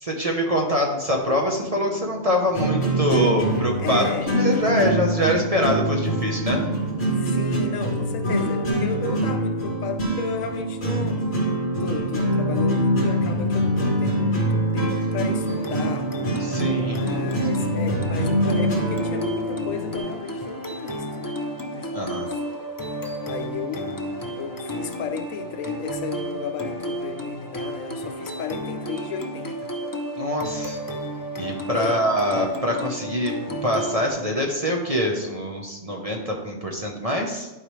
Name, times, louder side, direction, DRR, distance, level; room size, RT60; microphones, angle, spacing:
voice 1, 0.0-4.0 4.3-6.6 16.4-17.0 21.9-22.3 30.1-30.8 31.4-37.5, equal, 30° right, 0.9 m, -24 dB
sound 1, 1.2-20.0, right 1 dB, 50° left, 2.3 m, -24 dB
voice 2, 3.8-4.3 7.1-11.2 11.8-16.1 16.8-21.4 21.7-22.4 23.2-29.7 31.7-32.0, left 6 dB, 75° left, 1.1 m, -34 dB
sound 2, 15.5-34.1, equal, 25° left, 0.4 m, -32 dB
11.5 x 4.9 x 3.2 m
omnidirectional pair, 1.4 m